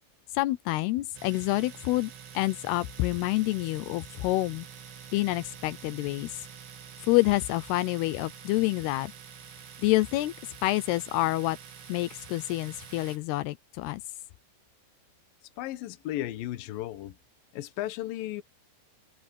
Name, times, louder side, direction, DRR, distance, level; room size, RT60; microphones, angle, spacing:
voice 1, 0.3-4.7 5.1-6.4 7.0-9.1 9.8-10.3 10.6-11.6 11.9-14.0, left 19 dB, 85° left, 2.8 m, -27 dB
Domestic sounds home sounds, 1.1-13.2, right 7 dB, 85° right, 5.7 m, -47 dB
voice 2, 15.6-17.2 17.5-18.4, left 14 dB, 70° left, 2.7 m, -35 dB
omnidirectional pair, 4.6 m